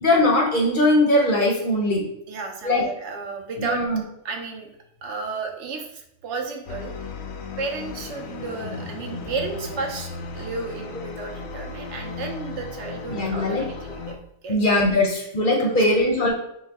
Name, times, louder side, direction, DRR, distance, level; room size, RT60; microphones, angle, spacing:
voice 1, 0.0-2.0 2.6-2.8 3.6-4.0 13.1-13.6 14.5-16.3, left 1 dB, 50° left, -1 dB, 0.7 m, -20 dB
voice 2, 2.3-3.8 4.2-4.7 5.0-7.1 7.6-10.1 10.3-14.2 14.4-14.6 14.9-15.1 15.6-15.8, right 4 dB, 65° right, 3 dB, 0.9 m, -33 dB
sound 1, 6.7-14.2, left 4 dB, 90° left, 1.0 m, -36 dB
5.4 x 2.0 x 3.4 m, 0.78 s
omnidirectional pair, 1.4 m